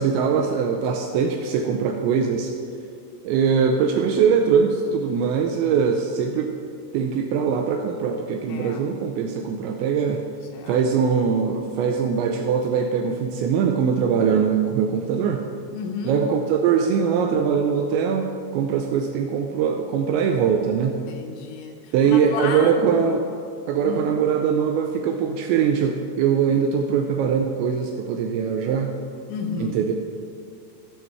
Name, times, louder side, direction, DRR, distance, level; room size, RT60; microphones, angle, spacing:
voice 1, 0.0-2.5 3.2-6.5 6.9-10.2 10.7-15.4 16.0-21.0 21.9-23.2 23.7-28.9 29.6-29.9, right 6 dB, 85° right, 3 dB, 2.6 m, -22 dB
voice 2, 8.5-8.9 10.3-10.8 15.7-16.2 21.1-23.0 23.8-24.1 29.3-29.8, left 5 dB, 80° left, 4 dB, 2.9 m, -32 dB
15.0 x 6.4 x 4.5 m, 2.3 s
omnidirectional pair, 5.6 m